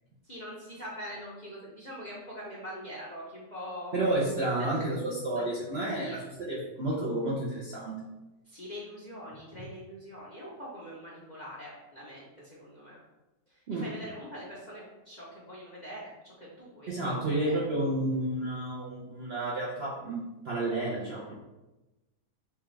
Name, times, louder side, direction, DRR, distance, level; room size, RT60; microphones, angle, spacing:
voice 1, 0.2-4.1 4.6-4.7 5.3-5.5 5.9-6.2 8.5-13.0 13.5-17.6, equal, 35° left, -6 dB, 0.7 m, -43 dB
voice 2, 3.9-8.0 13.7-13.9 16.9-21.3, right 2 dB, 55° right, -5 dB, 0.7 m, -31 dB
6.6 x 2.4 x 3.2 m, 1.0 s
omnidirectional pair, 1.9 m